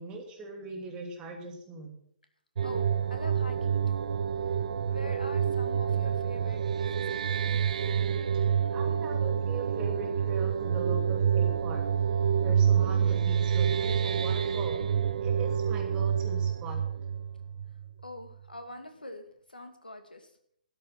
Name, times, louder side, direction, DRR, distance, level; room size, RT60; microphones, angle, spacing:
voice 1, 0.0-1.9 8.7-11.8 12.4-14.8 15.2-16.8, right 3 dB, 20° right, 2 dB, 3.0 m, -41 dB
voice 2, 2.6-4.1 4.4-4.6 4.9-7.4 17.9-20.3, left 1 dB, 80° left, 7 dB, 2.4 m, -44 dB
sound 1, 2.6-18.0, right 8 dB, 55° right, 0.7 m, -28 dB
12.5 x 11.0 x 6.0 m, 0.68 s
figure-of-eight pair, 130°, 5 cm